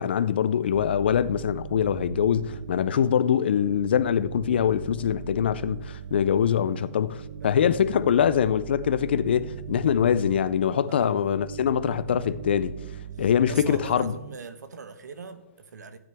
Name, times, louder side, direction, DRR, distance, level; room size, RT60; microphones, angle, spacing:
voice 1, 0.0-12.7 13.2-14.1, left 8 dB, 40° left, 0.4 m, -23 dB
sound 1, 0.7-14.4, right 9 dB, 30° right, 0.4 m, -39 dB
voice 2, 10.9-11.3 13.2-16.0, right 5 dB, 85° right, 1.2 m, -42 dB
15.0 x 9.3 x 3.5 m
hypercardioid pair, 175°, 9 cm